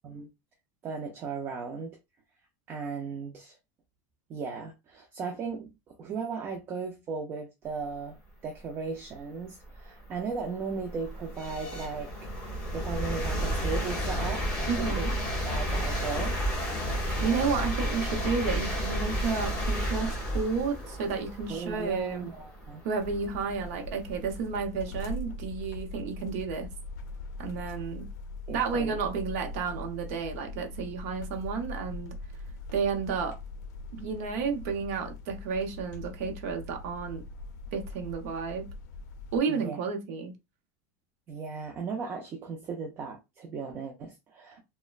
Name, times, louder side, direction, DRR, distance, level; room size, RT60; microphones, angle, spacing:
voice 1, 0.8-2.0 2.7-3.6 4.3-8.2 8.4-12.1 12.7-15.1 15.5-16.4 21.5-22.8 28.5-29.0 39.5-39.8 41.3-44.6, right 5 dB, 25° right, 0.4 m, -36 dB
sound 1, 9.0-9.1 9.7-24.4, equal, 10° left, 1.0 m, -32 dB
voice 2, 14.7-15.1 17.2-22.3 22.8-26.7 27.4-28.1 28.5-32.1 32.7-33.4 33.9-37.2 37.7-38.7 39.3-40.3, right 5 dB, 60° right, 0.7 m, -31 dB
sound 2, 23.0-39.4, left 2 dB, 80° left, 0.4 m, -41 dB
3.0 x 2.1 x 2.3 m
supercardioid pair, 165°, 9 cm